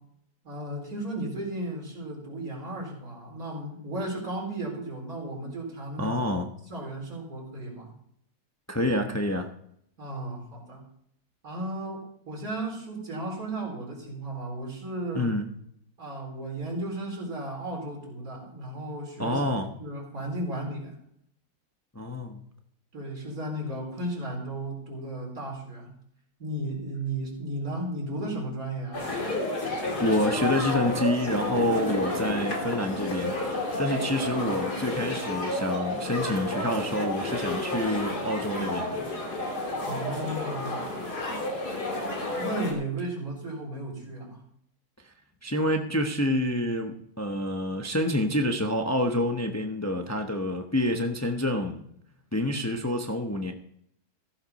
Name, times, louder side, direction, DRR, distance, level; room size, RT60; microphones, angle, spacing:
voice 1, 0.4-6.2 6.7-7.9 10.0-10.8 11.4-15.3 16.0-19.4 19.8-21.0 22.9-25.9 26.4-29.0 39.8-40.8 42.4-44.4, right 1 dB, 65° right, -1 dB, 4.5 m, -34 dB
voice 2, 6.0-6.5 8.7-9.5 15.1-15.5 19.2-19.7 21.9-22.4 30.0-33.3 33.8-39.0 45.4-51.8 52.3-53.5, left 1 dB, 15° left, 4 dB, 0.8 m, -27 dB
sound 1, 28.9-42.7, left 2 dB, 85° left, 3.2 m, -31 dB
15.0 x 8.6 x 5.3 m, 0.72 s
omnidirectional pair, 1.7 m